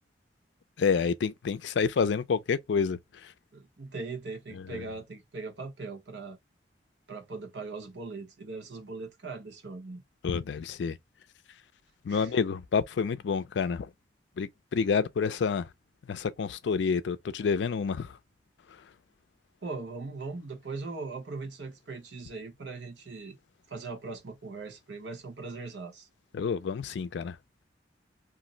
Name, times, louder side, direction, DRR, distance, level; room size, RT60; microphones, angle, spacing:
voice 1, 0.8-3.3 4.5-4.8 10.2-11.0 12.0-13.9 14.4-15.7 16.1-18.2 26.3-27.4, left 5 dB, 75° left, 0.4 m, -29 dB
voice 2, 3.5-6.4 7.1-10.0 12.1-12.3 19.6-23.4 23.7-26.1, right 3 dB, 75° right, 0.9 m, -40 dB
2.5 x 2.0 x 3.8 m
head